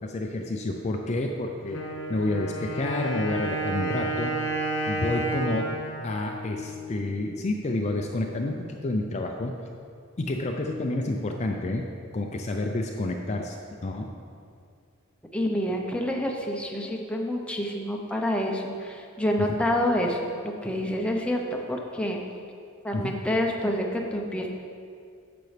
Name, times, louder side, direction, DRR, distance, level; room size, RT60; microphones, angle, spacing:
voice 1, 0.0-1.8 2.1-4.4 4.9-5.7 6.0-9.6 10.2-11.9 12.1-14.1 22.9-23.1, left 2 dB, 35° left, 2 dB, 0.5 m, -29 dB
Wind instrument woodwind instrument, 1.7-7.4, right 2 dB, 80° left, 1.0 m, -31 dB
voice 2, 15.3-20.3 20.6-21.4 21.7-22.2 22.8-24.5, left 1 dB, 5° left, 0 dB, 0.7 m, -27 dB
10.5 x 6.9 x 3.3 m, 2.3 s
head